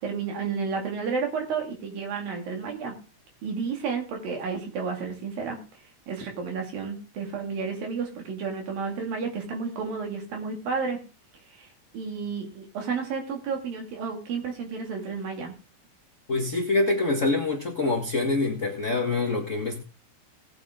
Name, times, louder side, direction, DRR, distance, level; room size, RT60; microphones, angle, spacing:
voice 1, 0.0-2.9 3.4-5.6 6.1-11.0 11.5-15.5, right 5 dB, 75° right, 2 dB, 4.3 m, -31 dB
voice 2, 16.3-19.8, left 3 dB, 50° left, 1 dB, 0.9 m, -25 dB
18.5 x 7.9 x 3.7 m, 0.34 s
omnidirectional pair, 4.1 m